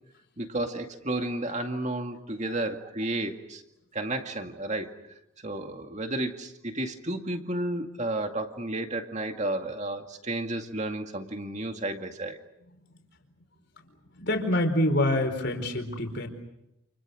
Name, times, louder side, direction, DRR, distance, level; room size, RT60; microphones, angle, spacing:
voice 1, 0.4-3.6 3.9-5.0 5.4-12.4, right 1 dB, 30° right, 5 dB, 2.2 m, -32 dB
voice 2, 14.2-16.3, left 1 dB, 50° left, 6 dB, 4.5 m, -26 dB
29.5 x 29.0 x 6.4 m, 0.86 s
head